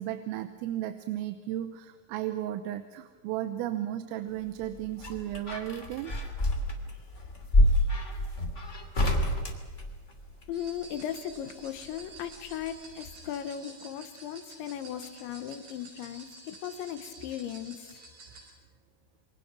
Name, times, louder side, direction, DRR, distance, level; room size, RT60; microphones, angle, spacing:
voice 1, 0.0-6.1, right 12 dB, 85° right, 9 dB, 3.5 m, -34 dB
sound 1, 4.5-10.5 11.9-12.8 13.0-13.1, left 1 dB, 20° left, 1.8 m, -28 dB
voice 2, 10.5-17.9, left 10 dB, 75° left, 9 dB, 3.3 m, -37 dB
sound 2, 10.5-18.5, right 3 dB, 55° right, 8.5 m, -50 dB
28.0 x 24.0 x 6.1 m, 1.4 s
omnidirectional pair, 5.9 m